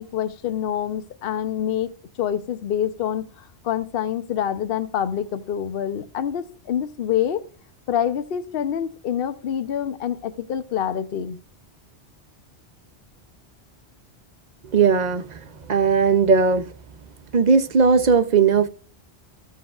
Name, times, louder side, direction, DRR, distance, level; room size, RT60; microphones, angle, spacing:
voice 1, 0.0-7.4 7.9-11.4, left 9 dB, 60° left, 0.8 m, -26 dB
voice 2, 14.7-16.7 17.3-18.7, right 5 dB, 50° right, 0.6 m, -18 dB
14.5 x 7.4 x 2.3 m
omnidirectional pair, 1.1 m